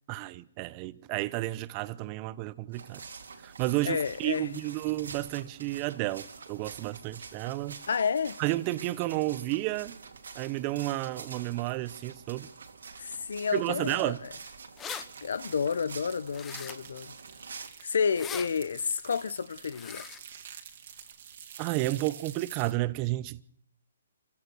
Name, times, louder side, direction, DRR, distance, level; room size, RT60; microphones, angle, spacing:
voice 1, 0.1-3.0 3.4-7.8 8.4-10.0 10.3-12.5 13.5-14.2 21.6-23.4, right 18 dB, 25° right, 0.8 m, -31 dB
sound 1, 2.7-17.7, right 5 dB, 85° right, 2.9 m, -47 dB
voice 2, 3.8-4.5 7.9-8.4 13.0-14.1 14.9-17.1 17.8-20.1, left 6 dB, 70° left, 0.9 m, -30 dB
sound 2, 14.3-14.4 14.6-15.0 16.3-17.0 18.0-18.5 19.7-20.2, left 8 dB, 15° left, 0.8 m, -40 dB
sound 3, 14.9-22.7, right 8 dB, 50° right, 2.2 m, -49 dB
27.0 x 15.5 x 6.4 m
hypercardioid pair, 160°, 0 cm